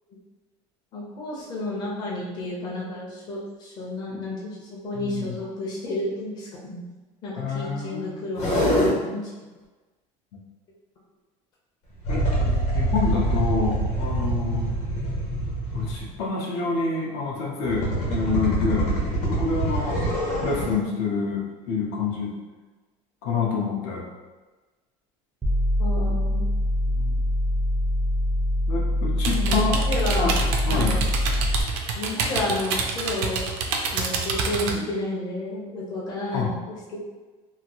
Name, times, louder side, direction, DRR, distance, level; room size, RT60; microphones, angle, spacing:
voice 1, 0.9-6.8 7.2-9.3 25.8-26.5 29.3-30.4 30.7-31.0 31.9-33.5 33.9-37.0, left 1 dB, 30° left, -5 dB, 0.7 m, -31 dB
voice 2, 4.9-5.4 7.4-8.1 12.1-14.7 15.7-18.9 19.3-20.1 20.4-22.4 23.2-24.1 26.9-27.2 28.7-29.8 30.1-30.4 30.6-31.0 36.3-36.5, left 4 dB, 65° left, -2 dB, 0.7 m, -27 dB
sound 1, 8.4-8.9 12.0-16.2 17.7-20.8, right 1 dB, 50° left, 1.1 m, -25 dB
sound 2, 25.4-31.6, left 1 dB, 10° right, 0.3 m, -24 dB
sound 3, 29.2-34.7, right 4 dB, 85° right, 0.5 m, -27 dB
2.9 x 2.5 x 2.8 m, 1.2 s
cardioid pair, 175°, 14 cm